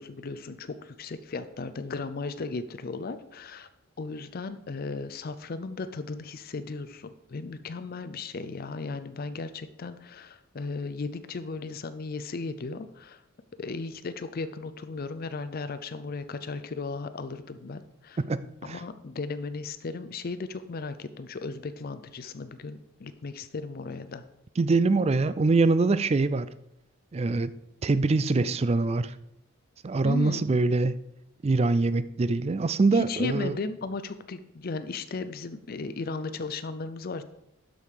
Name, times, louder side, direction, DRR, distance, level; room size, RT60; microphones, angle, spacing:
voice 1, 0.0-3.7 4.0-13.2 13.6-18.2 18.6-24.2 30.0-30.5 32.9-37.2, left 3 dB, 45° left, 11 dB, 0.5 m, -36 dB
voice 2, 18.2-18.8 24.6-26.5 27.1-27.5 27.8-29.1 29.8-31.0 31.4-33.6, right 3 dB, 30° right, 15 dB, 0.4 m, -24 dB
12.0 x 5.3 x 4.9 m, 0.81 s
head